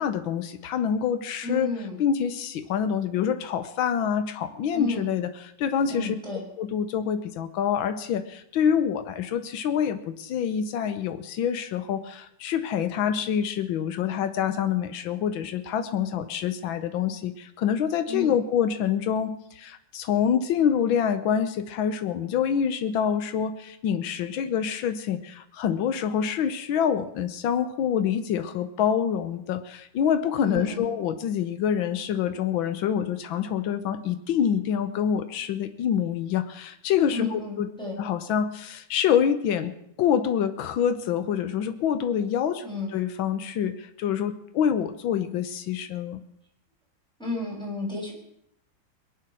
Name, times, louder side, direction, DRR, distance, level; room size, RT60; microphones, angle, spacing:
voice 1, 0.0-1.7 2.0-6.1 6.6-37.7 38.0-42.6 42.9-46.2, left 8 dB, 90° left, 10 dB, 1.6 m, -26 dB
voice 2, 1.4-2.0 4.7-5.1 5.9-6.4 18.1-18.3 30.4-30.8 37.1-38.0 42.6-42.9 47.2-48.1, left 2 dB, ahead, -4 dB, 6.4 m, -32 dB
22.5 x 8.9 x 6.2 m, 0.75 s
omnidirectional pair, 2.1 m